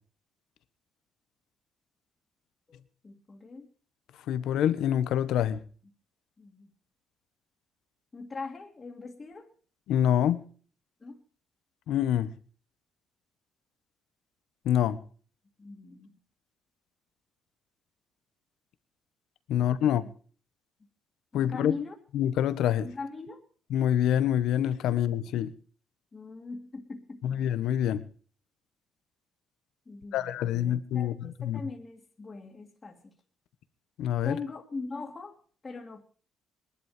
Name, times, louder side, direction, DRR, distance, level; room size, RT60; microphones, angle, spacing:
voice 1, 3.0-3.7 6.4-6.7 8.1-9.5 11.0-11.2 15.6-16.1 21.3-22.0 22.8-23.4 26.1-27.4 29.9-33.1 34.2-35.3 35.6-36.0, left 3 dB, 30° left, 2.5 m, -41 dB
voice 2, 4.3-5.6 9.9-10.4 11.9-12.3 14.6-15.0 19.5-20.0 21.3-21.7 22.1-22.9 23.7-25.5 27.2-28.0 30.1-31.6 34.0-34.4, left 10 dB, 85° left, 1.2 m, -26 dB
20.5 x 12.0 x 5.0 m
cardioid pair, 90°, 0 cm